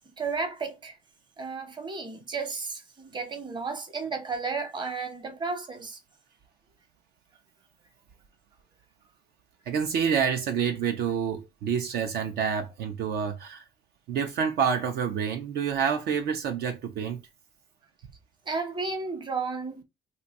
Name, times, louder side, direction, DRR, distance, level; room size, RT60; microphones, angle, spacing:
voice 1, 0.2-1.0 1.4-6.0 18.5-19.8, right 4 dB, 25° right, 0.9 m, -33 dB
voice 2, 9.7-13.7 14.1-17.2, right 7 dB, 70° right, 0.6 m, -28 dB
2.6 x 2.4 x 4.1 m
cardioid pair, 110°, 17 cm